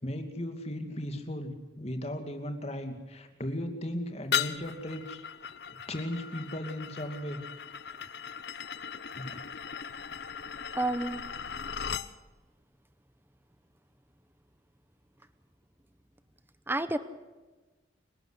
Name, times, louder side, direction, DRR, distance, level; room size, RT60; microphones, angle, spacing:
voice 1, 0.0-5.2 5.9-7.4 9.2-9.4, left 1 dB, 35° left, 6 dB, 2.4 m, -36 dB
sound 1, 4.3-12.1, left 7 dB, 55° left, 0.8 m, -37 dB
voice 2, 10.7-11.2 16.7-17.0, right 2 dB, 10° right, 12 dB, 0.9 m, -29 dB
29.0 x 12.5 x 8.2 m, 1.2 s
head